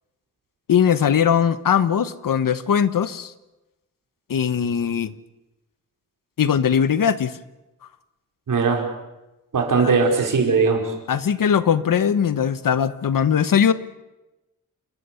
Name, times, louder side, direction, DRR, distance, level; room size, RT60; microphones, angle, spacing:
voice 1, 0.7-3.3 4.3-5.1 6.4-7.3 9.8-9.9 11.1-13.7, left 8 dB, 75° left, 14 dB, 1.2 m, -20 dB
voice 2, 8.5-8.8 9.5-10.9, right 4 dB, 70° right, 2 dB, 4.9 m, -19 dB
29.5 x 14.0 x 8.5 m, 1.0 s
wide cardioid pair, 135°, 33 cm